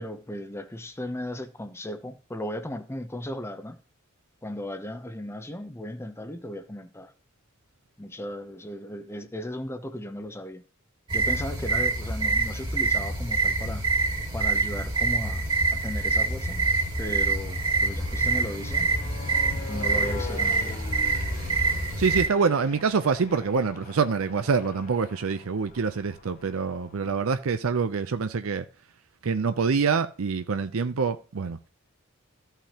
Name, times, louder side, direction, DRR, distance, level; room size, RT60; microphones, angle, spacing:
voice 1, 0.0-3.8 4.4-7.1 8.0-10.6 11.1-13.9 14.3-16.7 17.0-19.0 19.5-20.8, left 1 dB, 10° left, 0.6 m, -36 dB
sound 1, 11.1-22.3, right 3 dB, 25° right, 1.8 m, -26 dB
sound 2, 11.9-12.6 13.3-27.3, left 2 dB, 40° left, 1.2 m, -43 dB
voice 2, 22.0-28.6 29.2-31.7, right 5 dB, 70° right, 0.5 m, -26 dB
14.5 x 5.7 x 2.9 m
head